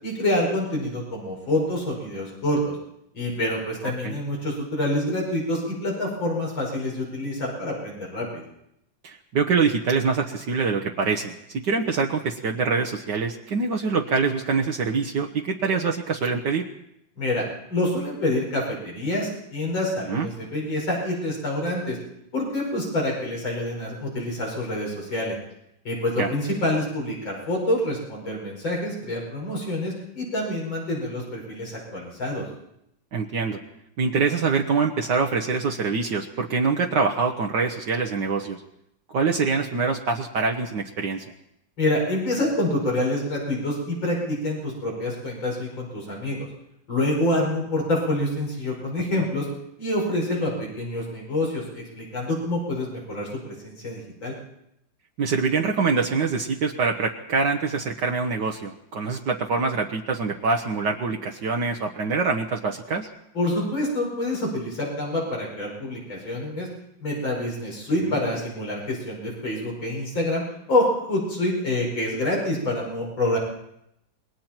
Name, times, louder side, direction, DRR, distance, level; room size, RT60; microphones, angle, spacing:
voice 1, 0.0-2.7 3.1-8.5 17.2-17.4 17.7-22.0 22.3-25.3 25.8-32.4 41.8-46.5 46.9-49.5 49.8-54.3 63.3-66.7 67.0-73.4, left 1 dB, 85° left, -2 dB, 6.4 m, -27 dB
voice 2, 9.0-11.3 11.6-16.7 20.1-20.3 26.2-26.3 33.1-33.6 34.0-38.6 39.1-41.2 49.1-49.3 55.2-63.1 68.0-68.2, right 4 dB, 65° right, 1 dB, 1.8 m, -25 dB
27.5 x 22.0 x 4.5 m, 0.79 s
omnidirectional pair, 2.1 m